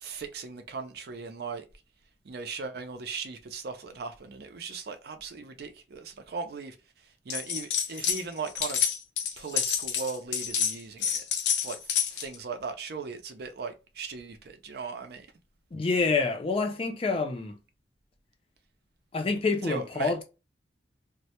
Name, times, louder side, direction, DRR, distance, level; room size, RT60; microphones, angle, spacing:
voice 1, 0.0-1.7 2.2-6.8 7.3-8.8 9.4-11.2 11.6-11.8 12.1-15.3 19.6-20.1, right 4 dB, 60° right, 0.4 m, -38 dB
sound 1, 7.3-8.2 8.5-12.3, left 8 dB, 85° left, 0.6 m, -28 dB
voice 2, 15.7-17.6 19.1-20.2, left 4 dB, 30° left, 0.4 m, -27 dB
2.1 x 2.1 x 2.8 m
head